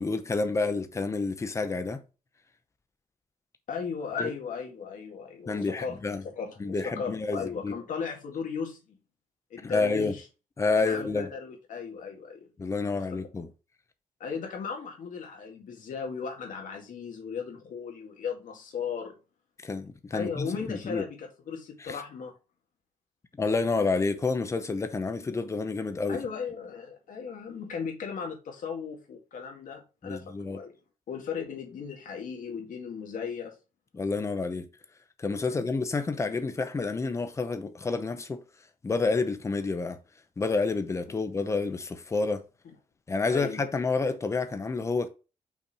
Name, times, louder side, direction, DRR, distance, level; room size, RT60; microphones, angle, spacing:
voice 1, 0.0-2.0 4.2-4.3 5.5-6.2 6.6-7.7 9.6-10.1 10.6-11.3 12.6-13.5 19.6-21.0 21.9-22.0 23.4-26.2 30.0-30.6 33.9-34.7 35.2-38.4 38.8-40.0 40.4-42.4 43.1-45.1, left 3 dB, 20° left, 0.7 m, -29 dB
voice 2, 3.7-6.0 6.2-9.0 9.5-10.2 10.8-12.5 14.2-19.2 20.1-22.3 26.1-30.7 31.1-33.6 35.5-35.7 43.3-43.6, left 6 dB, 65° left, 2.0 m, -36 dB
5.8 x 4.4 x 4.3 m
wide cardioid pair, 175°, 14 cm